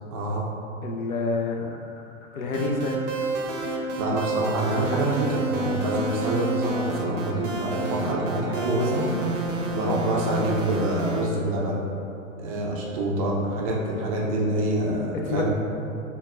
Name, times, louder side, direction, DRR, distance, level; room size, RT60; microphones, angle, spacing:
voice 1, 0.1-0.4 4.0-9.1 9.7-11.8 12.4-15.5, right 1 dB, 25° right, -3 dB, 0.4 m, -26 dB
voice 2, 0.8-1.7 2.3-3.0 15.2-15.5, left 3 dB, 75° left, 2 dB, 0.6 m, -27 dB
sound 1, 1.1-11.6, left 4 dB, 60° left, 1.3 m, -50 dB
sound 2, 2.5-11.3, right 2 dB, 65° right, 0.6 m, -29 dB
5.5 x 2.2 x 2.4 m, 2.7 s
figure-of-eight pair, 105°, 43 cm